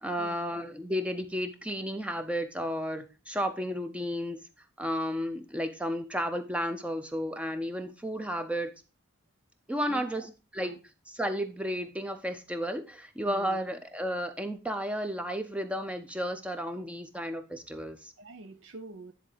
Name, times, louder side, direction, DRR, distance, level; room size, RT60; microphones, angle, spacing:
voice 1, 0.0-4.4 4.8-8.7 9.7-10.2 10.5-10.7 11.2-18.1, equal, 5° right, 0.5 m, -33 dB
voice 2, 9.9-10.3 10.6-10.8 13.2-13.6 16.8-16.9 18.2-19.1, right 3 dB, 70° right, 0.6 m, -46 dB
9.9 x 3.9 x 4.9 m
head